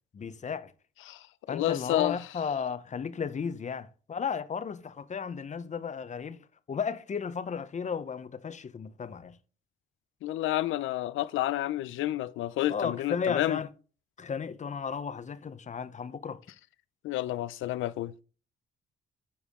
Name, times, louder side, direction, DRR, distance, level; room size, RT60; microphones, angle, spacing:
voice 1, 0.1-0.7 1.5-6.4 6.7-9.4 12.7-13.7 14.2-16.4, left 6 dB, 35° left, 0.8 m, -34 dB
voice 2, 1.1-2.3 10.2-13.6 17.0-18.1, left 14 dB, 80° left, 0.6 m, -30 dB
8.5 x 4.9 x 3.6 m
cardioid pair, 90°, 20 cm